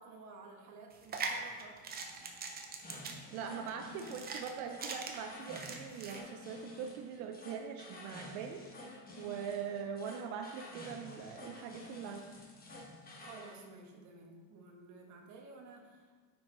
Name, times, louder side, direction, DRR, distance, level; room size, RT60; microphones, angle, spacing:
voice 1, 0.0-1.8 13.2-16.2, right 3 dB, 40° right, 1 dB, 1.3 m, -53 dB
sound 1, 0.9-6.2, right 4 dB, 20° right, 0.6 m, -42 dB
sound 2, 2.8-13.6, left 2 dB, 20° left, 1.2 m, -51 dB
voice 2, 3.3-8.6 9.2-12.3, right 7 dB, 80° right, 4 dB, 0.7 m, -42 dB
9.1 x 4.7 x 3.9 m, 1.5 s
cardioid pair, 155°, 45 cm